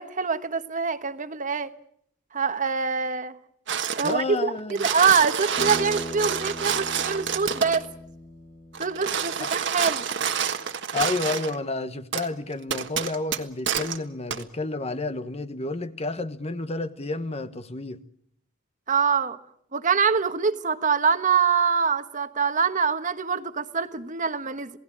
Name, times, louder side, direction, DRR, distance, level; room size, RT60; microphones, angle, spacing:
voice 1, 0.0-1.7 2.3-3.3 4.0-7.8 8.8-10.1 18.9-19.4 19.7-24.7, right 6 dB, 40° right, 1.3 m, -24 dB
sound 1, 3.7-4.2 4.6-7.9 8.7-11.6 12.1-12.3 12.7-14.0 14.3-14.4, right 7 dB, 65° right, 1.5 m, -28 dB
voice 2, 4.0-4.9 9.4-9.5 10.9-18.0, left 3 dB, 30° left, 1.1 m, -30 dB
sound 2, 5.6-9.9, left 1 dB, 50° left, 7.7 m, -40 dB
28.0 x 17.5 x 8.6 m
head